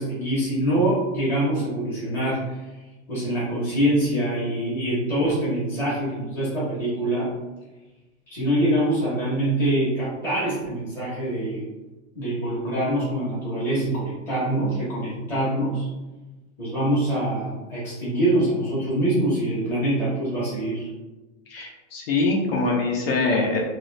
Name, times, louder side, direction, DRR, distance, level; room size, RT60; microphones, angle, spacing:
voice 1, 0.0-2.6 3.1-7.3 8.3-11.6 12.1-15.9 16.6-20.9, right 1 dB, 5° left, -10 dB, 0.7 m, -24 dB
voice 2, 21.5-23.6, left 3 dB, 55° left, -1 dB, 0.6 m, -23 dB
2.5 x 2.4 x 3.1 m, 1.1 s
supercardioid pair, 175°, 36 cm